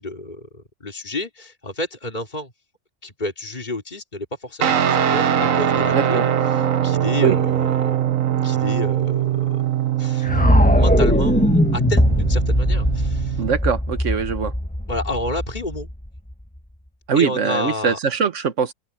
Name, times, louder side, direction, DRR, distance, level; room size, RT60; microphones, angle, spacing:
voice 1, 0.0-2.5 3.0-8.0 8.4-9.7 10.0-13.4 14.9-15.9 17.1-18.0, left 2 dB, 35° left, 3.7 m, -30 dB
Guitar, 4.6-13.5, right 10 dB, 90° right, 1.5 m, -22 dB
voice 2, 5.9-6.3 7.2-7.4 13.4-14.5 17.1-18.7, right 6 dB, 70° right, 1.7 m, -21 dB
sound 1, 10.3-16.3, left 1 dB, 5° left, 1.2 m, -19 dB
open air
omnidirectional pair, 1.3 m